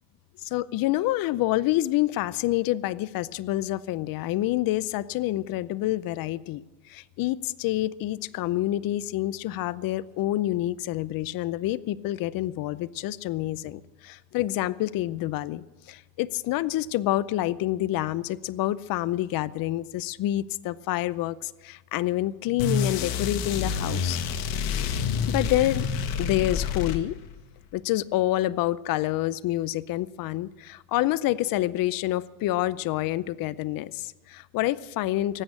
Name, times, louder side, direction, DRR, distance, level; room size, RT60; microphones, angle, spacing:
voice 1, 0.4-6.6 6.9-24.2 25.3-25.9 26.2-27.1 27.7-35.4, left 15 dB, 45° left, 18 dB, 0.6 m, -27 dB
sound 1, 22.6-27.4, left 6 dB, 85° left, 1.8 m, -28 dB
19.0 x 8.0 x 8.6 m, 1.1 s
cardioid pair, 130°, 48 cm